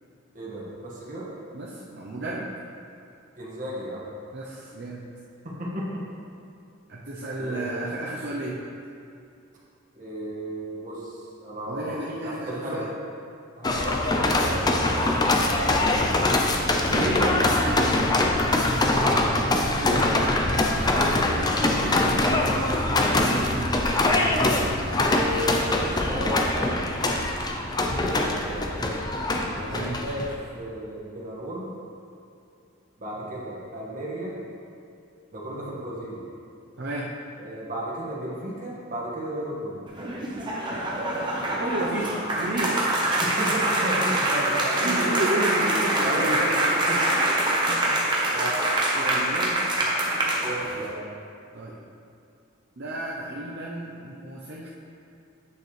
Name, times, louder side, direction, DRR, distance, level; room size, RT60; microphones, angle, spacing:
voice 1, 0.3-1.3 3.4-4.1 5.4-5.9 7.4-7.8 9.9-11.9 12.2-12.8 13.6-15.9 17.6-17.9 18.9-19.4 21.1-21.5 23.7-24.0 25.0-26.8 28.1-28.7 29.5-30.2 30.5-31.7 33.0-34.4 35.3-36.2 37.4-39.8 43.2-45.1 45.6-46.5 46.9-47.4 48.3-48.6 50.3-51.0, right 1 dB, 40° right, -6 dB, 1.7 m, -34 dB
voice 2, 1.5-2.5 4.3-5.0 6.9-8.6 11.7-12.9 16.9-17.8 19.8-22.9 23.2-23.8 29.7-30.0 36.8-37.1 41.1-42.9 44.8-46.7 47.7-48.4 48.9-49.7 51.5-51.8 52.8-54.7, right 1 dB, 55° right, -5 dB, 0.7 m, -32 dB
sound 1, 13.6-30.3, left 2 dB, 20° left, 0.5 m, -23 dB
sound 2, 39.9-50.9, right 1 dB, 25° right, 1.1 m, -25 dB
8.5 x 6.7 x 3.3 m, 2.5 s
head